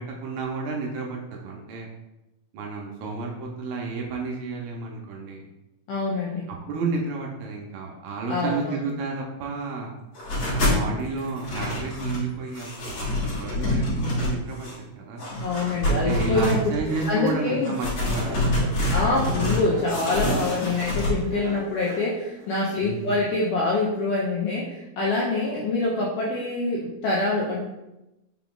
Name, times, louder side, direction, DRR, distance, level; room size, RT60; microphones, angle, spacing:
voice 1, 0.0-1.9 2.5-5.5 6.5-10.0 10.5-15.2 15.9-18.9 22.8-23.1, right 3 dB, 80° right, 0 dB, 2.3 m, -32 dB
voice 2, 5.9-6.5 8.3-8.8 15.3-16.6 17.1-17.7 18.9-27.6, left 3 dB, 85° left, -5 dB, 1.8 m, -25 dB
sound 1, 10.1-10.8 11.2-12.3 12.5-14.7 15.2-17.1 17.6-19.6 19.9-21.1, left 1 dB, 45° left, 2.3 m, -26 dB
sound 2, 16.9-23.3, right 2 dB, 65° right, 1.0 m, -40 dB
5.9 x 3.8 x 2.3 m, 0.96 s
omnidirectional pair, 4.4 m